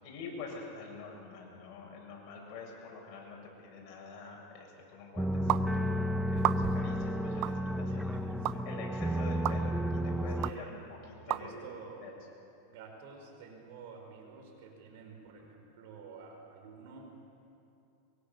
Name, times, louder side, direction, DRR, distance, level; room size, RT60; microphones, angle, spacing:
voice 1, 0.0-5.9 6.3-8.1 8.7-10.4 10.7-10.8 11.3-11.6 12.0-12.1, left 4 dB, 45° left, -2 dB, 7.3 m, -46 dB
sound 1, 5.2-10.5, equal, 5° right, 0.7 m, -32 dB
sound 2, 5.5-5.6 6.4-6.9 7.4-7.6 8.4-8.6 9.4-9.6 10.4-10.5 11.3-11.4, right 15 dB, 45° right, 0.6 m, -31 dB
voice 2, 7.9-8.7 10.4-10.8 11.3-12.1 12.7-17.2, right 5 dB, 65° right, 2 dB, 5.3 m, -50 dB
24.0 x 23.0 x 7.1 m, 2.7 s
supercardioid pair, 140°, 0 cm